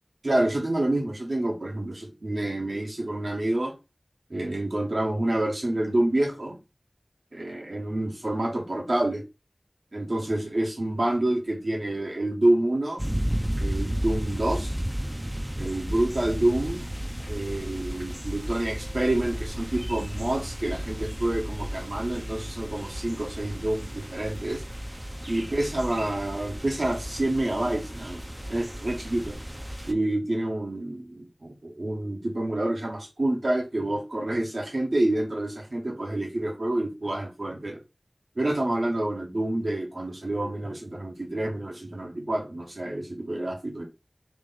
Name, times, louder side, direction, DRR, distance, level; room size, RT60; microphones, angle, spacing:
voice 1, 0.2-3.7 4.3-6.6 7.3-9.2 9.9-13.0 13.6-14.7 15.6-16.9 17.3-24.6 25.3-29.4 29.9-37.8 38.4-43.9, right 1 dB, 70° right, 1.3 m, -28 dB
sound 1, 13.0-29.9, equal, 15° right, 0.6 m, -33 dB
3.3 x 3.2 x 4.0 m
wide cardioid pair, 45°, 0 cm